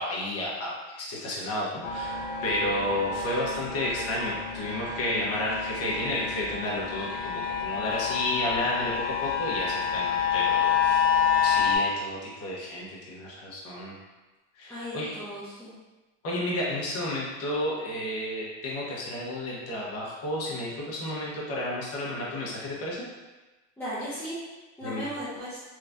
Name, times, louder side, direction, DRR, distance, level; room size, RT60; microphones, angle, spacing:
voice 1, 0.0-8.9 9.2-11.0 11.4-14.0 14.6-15.5 16.2-23.0 24.8-25.1, left 1 dB, 35° left, -5 dB, 1.1 m, -32 dB
sound 1, 1.8-11.8, left 7 dB, 75° left, 0.7 m, -28 dB
voice 2, 14.7-15.7 23.8-24.4 24.8-25.6, equal, 5° left, -13 dB, 0.7 m, -36 dB
3.5 x 3.0 x 2.6 m, 1.2 s
supercardioid pair, 135°, 39 cm